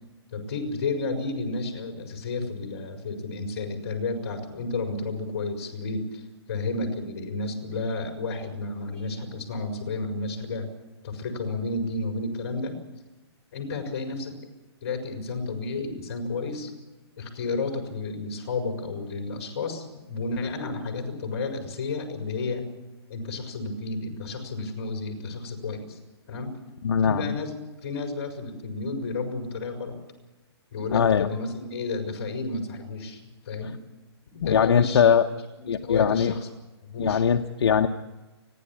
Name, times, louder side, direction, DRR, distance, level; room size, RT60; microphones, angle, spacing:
voice 1, 0.3-6.1 6.5-10.7 11.0-12.7 13.5-14.4 14.8-16.7 17.2-22.7 23.1-26.0 26.3-26.5 27.0-27.6 27.8-30.0 30.7-33.2 33.5-33.7 34.3-35.1 35.6-36.5 36.9-37.2, left 3 dB, 35° left, 4 dB, 5.0 m, -31 dB
voice 2, 26.8-27.4 30.9-31.3 33.6-33.7 34.4-35.3 35.7-36.3 37.0-37.9, left 7 dB, 65° left, 5 dB, 0.9 m, -21 dB
29.5 x 11.0 x 8.7 m, 1.1 s
hypercardioid pair, 175°, 14 cm